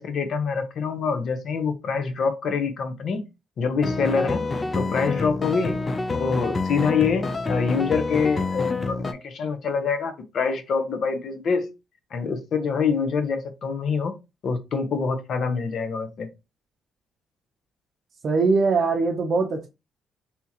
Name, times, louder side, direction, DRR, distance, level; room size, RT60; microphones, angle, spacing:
voice 1, 0.0-3.2 3.6-4.5 4.8-5.8 6.1-9.0 9.2-11.7 12.1-14.1 14.4-16.3, left 5 dB, 60° left, 0.8 m, -25 dB
sound 1, 3.8-9.1, left 3 dB, 25° left, 0.5 m, -27 dB
voice 2, 18.2-19.7, right 4 dB, 50° right, 0.6 m, -21 dB
3.5 x 2.8 x 2.9 m
cardioid pair, 90°, 0 cm